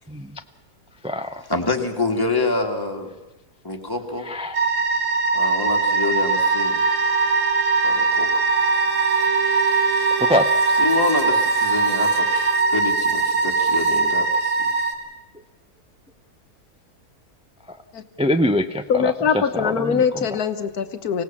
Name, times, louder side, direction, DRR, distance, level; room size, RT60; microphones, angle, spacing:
voice 1, 0.1-0.4 1.0-1.4 4.2-4.6 10.2-10.5 17.7-17.8 18.2-20.3, left 1 dB, 10° right, 7 dB, 0.3 m, -24 dB
voice 2, 1.5-3.1 3.6-4.3 5.3-6.8 7.8-8.3 10.8-14.7, left 3 dB, 15° left, 3 dB, 1.9 m, -26 dB
sound 1, 4.5-14.9, right 4 dB, 50° right, 2.6 m, -21 dB
Bowed string instrument, 6.3-12.9, right 8 dB, 70° right, 1.4 m, -31 dB
voice 3, 18.9-21.2, left 6 dB, 75° left, 9 dB, 1.6 m, -22 dB
25.0 x 17.5 x 7.2 m, 1.1 s
omnidirectional pair, 1.6 m